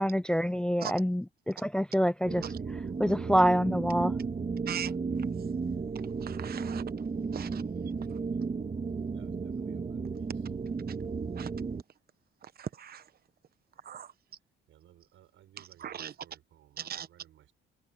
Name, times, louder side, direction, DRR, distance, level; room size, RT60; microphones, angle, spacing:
voice 1, 0.0-2.4 3.0-4.1, equal, 5° left, 0.4 m, -26 dB
sound 1, 2.3-11.8, right 5 dB, 35° right, 2.4 m, -34 dB
voice 2, 6.2-6.8 7.3-7.6 11.4-11.5 12.6-13.0 13.9-14.1 15.8-16.1 16.8-17.1, right 9 dB, 50° right, 1.1 m, -38 dB
voice 3, 9.1-10.5 14.7-17.5, right 12 dB, 80° right, 7.1 m, -60 dB
cardioid pair, 90°, 20 cm